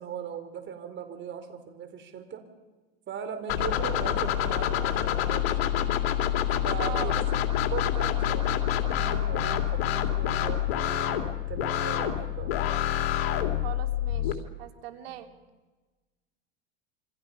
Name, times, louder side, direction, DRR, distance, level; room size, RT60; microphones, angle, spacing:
voice 1, 0.0-2.4 3.1-6.0 6.6-7.2 7.7-12.9 15.1-15.2, right 7 dB, 35° right, 7 dB, 4.4 m, -39 dB
sound 1, 3.5-14.3, left 11 dB, 70° left, 3.0 m, -27 dB
voice 2, 6.8-7.1 13.6-15.3, right 14 dB, 75° right, 6 dB, 2.8 m, -40 dB
27.5 x 25.0 x 5.6 m, 1.2 s
hypercardioid pair, 110°, 31 cm